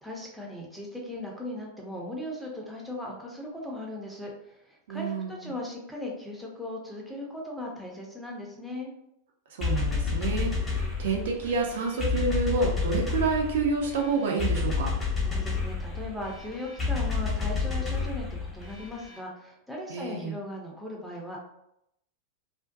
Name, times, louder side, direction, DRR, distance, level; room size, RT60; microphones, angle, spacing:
voice 1, 0.0-8.9 15.2-21.4, left 1 dB, ahead, -2 dB, 0.6 m, -38 dB
voice 2, 4.9-5.5 9.5-14.9 19.9-20.4, right 4 dB, 60° right, 0 dB, 0.4 m, -29 dB
sound 1, 9.6-19.2, left 4 dB, 20° left, 1.0 m, -30 dB
2.4 x 2.1 x 2.5 m, 0.79 s
figure-of-eight pair, 90°, 0 cm